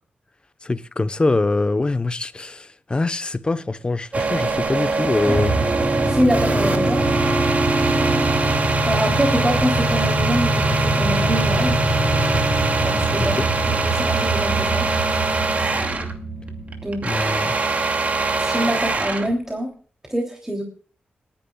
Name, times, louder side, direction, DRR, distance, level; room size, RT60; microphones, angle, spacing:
voice 1, 0.6-5.6 13.2-13.4 17.0-17.5, left 3 dB, 30° left, 1.0 m, -23 dB
sound 1, 4.1-16.2 16.5-19.3, right 3 dB, 45° right, 2.5 m, -23 dB
sound 2, 5.2-17.5, right 1 dB, 10° left, 7.1 m, -23 dB
voice 2, 6.0-7.1 8.9-11.8 12.8-13.4 13.7-14.9 16.8-17.0 18.4-19.7 20.1-20.6, equal, 10° right, 3.1 m, -24 dB
30.0 x 10.5 x 2.4 m
cardioid pair, 85°, 3 cm